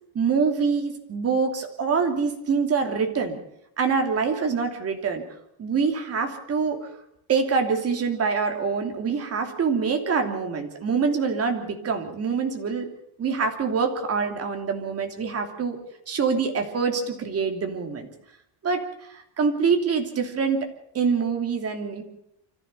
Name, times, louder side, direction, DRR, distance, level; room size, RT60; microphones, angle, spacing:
voice 1, 0.1-3.4 3.8-5.2 5.6-6.8 7.3-12.9 13.2-15.8 16.1-18.1 18.6-18.8 19.1-20.7 20.9-22.0, right 5 dB, 30° right, 4 dB, 3.0 m, -25 dB
25.5 x 14.5 x 7.0 m, 0.78 s
cardioid pair, 160°, 47 cm